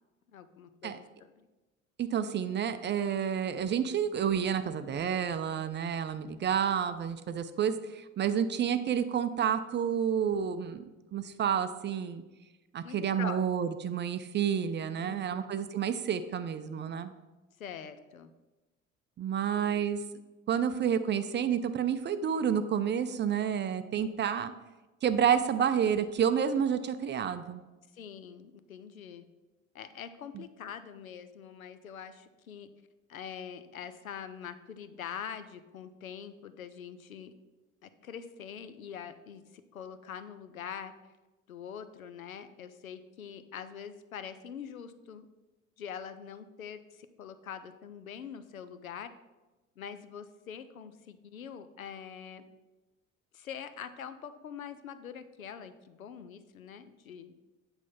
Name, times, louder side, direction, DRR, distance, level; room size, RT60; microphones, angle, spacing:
voice 1, 0.3-1.0 1.4-1.5 12.8-13.4 15.0-15.5 17.6-18.3 27.9-29.2 29.7-32.7 33.1-37.3 37.8-40.9 41.5-45.3 45.8-49.1 49.8-52.4 53.3-57.3, left 8 dB, 90° left, 12 dB, 0.5 m, -44 dB
voice 2, 2.0-10.8 11.1-12.2 12.7-17.1 19.2-20.0 20.5-24.5 25.0-27.6 30.3-30.4, right 8 dB, 25° right, 11 dB, 0.5 m, -29 dB
8.2 x 3.4 x 5.7 m, 1.1 s
figure-of-eight pair, 60°, 40 cm